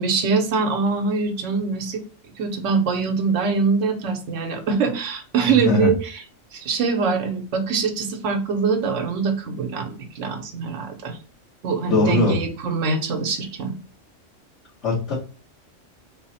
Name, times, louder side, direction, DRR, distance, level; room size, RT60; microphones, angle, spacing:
voice 1, 0.0-2.0 2.4-6.2 6.5-11.2 11.6-13.7, right 4 dB, 85° right, 1.1 m, -23 dB
voice 2, 5.4-5.9 11.9-12.4 14.8-15.1, left 2 dB, 75° left, 1.7 m, -20 dB
3.9 x 2.0 x 4.0 m
omnidirectional pair, 1.2 m